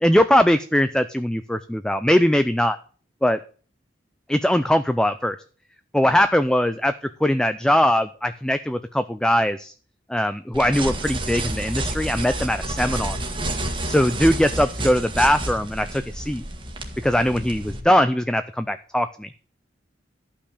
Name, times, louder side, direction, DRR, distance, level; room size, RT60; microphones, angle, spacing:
voice 1, 0.0-2.8 3.2-3.4 4.3-5.4 5.9-6.9 7.2-9.7 10.1-13.2 13.9-16.4 17.0-19.3, equal, 5° left, 10 dB, 0.4 m, -21 dB
sound 1, 10.5-17.8, right 1 dB, 30° right, 1.7 m, -29 dB
12.5 x 5.8 x 6.5 m, 0.41 s
head